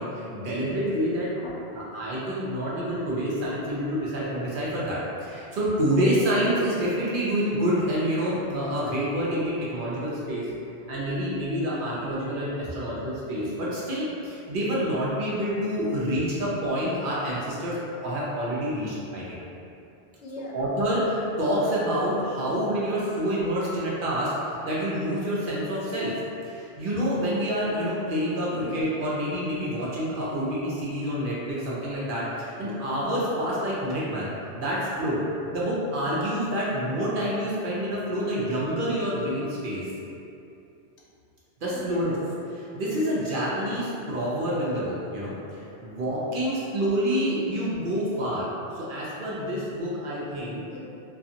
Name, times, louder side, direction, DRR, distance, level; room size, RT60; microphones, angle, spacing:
voice 1, 0.0-1.3 1.7-10.5 10.9-19.4 20.5-26.1 26.4-34.3 34.5-35.2 35.5-39.9 41.6-42.1 42.5-50.6, equal, 60° right, -7 dB, 0.6 m, -27 dB
voice 2, 1.4-1.7 10.5-10.6 20.2-20.6 23.3-23.4 28.5-28.7 41.7-42.0 45.8-45.9 50.7-50.8, left 1 dB, 80° left, -4 dB, 0.9 m, -42 dB
2.5 x 2.4 x 2.7 m, 2.7 s
omnidirectional pair, 1.2 m